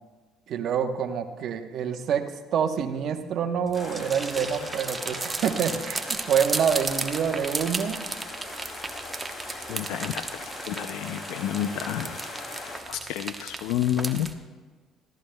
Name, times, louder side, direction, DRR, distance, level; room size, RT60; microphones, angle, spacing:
voice 1, 0.5-2.2 2.5-8.0, right 7 dB, 60° right, 7 dB, 1.0 m, -27 dB
sound 1, 3.7-12.8, left 3 dB, 45° left, 2.6 m, -40 dB
sound 2, 3.7-14.3, right 3 dB, 20° right, 0.9 m, -35 dB
voice 2, 9.7-12.2 12.9-14.3, left 11 dB, 80° left, 9 dB, 0.4 m, -30 dB
18.0 x 14.5 x 2.3 m, 1.4 s
supercardioid pair, 80°, 0 cm